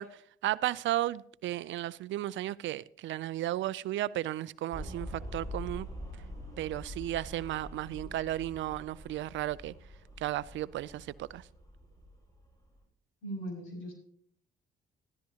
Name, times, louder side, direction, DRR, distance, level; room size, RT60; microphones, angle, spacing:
voice 1, 0.0-5.9 6.6-9.7 10.2-11.4, right 14 dB, 70° right, 0.4 m, -34 dB
sound 1, 4.7-12.8, left 1 dB, 20° left, 5.4 m, -45 dB
voice 2, 13.2-13.9, right 1 dB, 85° left, 6.2 m, -39 dB
14.0 x 13.0 x 2.8 m
cardioid pair, 90°, 20 cm